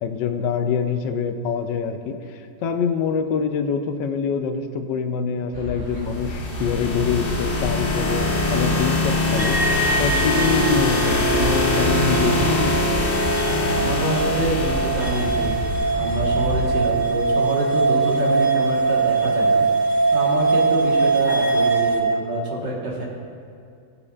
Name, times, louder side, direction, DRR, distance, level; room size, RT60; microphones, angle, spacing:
voice 1, 0.0-12.8, left 5 dB, 75° left, 7 dB, 1.3 m, -25 dB
sound 1, 5.5-16.8, equal, 35° right, 2.3 m, -30 dB
sound 2, 6.1-15.9, left 2 dB, 40° left, 0.9 m, -23 dB
sound 3, 9.4-22.0, right 3 dB, 20° right, 2.6 m, -22 dB
voice 2, 13.4-15.5 15.9-19.7 20.1-23.0, right 1 dB, 80° right, -3 dB, 2.2 m, -26 dB
19.5 x 6.9 x 2.4 m, 2.4 s
omnidirectional pair, 1.9 m